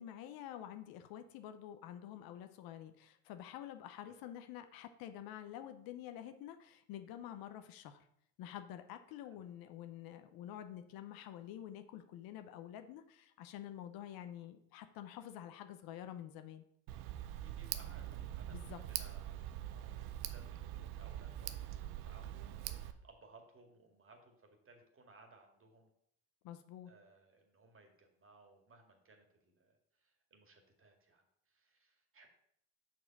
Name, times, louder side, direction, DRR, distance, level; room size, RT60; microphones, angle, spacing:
voice 1, 0.0-8.1 8.4-16.6 18.5-18.8 26.4-26.9, left 11 dB, 70° left, 9 dB, 0.8 m, -48 dB
Tick, 16.9-22.9, right 12 dB, 75° right, 0.7 m, -43 dB
voice 2, 17.4-25.9 26.9-32.3, right 3 dB, 35° right, 4 dB, 2.0 m, -63 dB
6.1 x 4.8 x 5.3 m, 0.71 s
hypercardioid pair, 65°, 37 cm